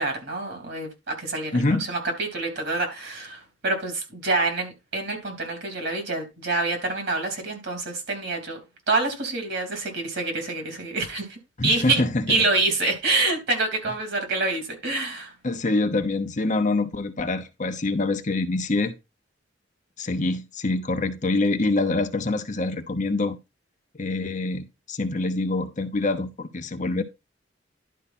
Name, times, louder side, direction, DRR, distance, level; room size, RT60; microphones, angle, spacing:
voice 1, 0.0-1.6 1.9-8.6 8.9-11.4 11.6-15.3, right 3 dB, 65° right, 3.2 m, -26 dB
voice 2, 1.5-1.9 11.6-12.4 15.4-18.9 20.0-23.4 23.9-27.0, left 2 dB, 40° left, 0.9 m, -25 dB
11.0 x 4.9 x 4.2 m
head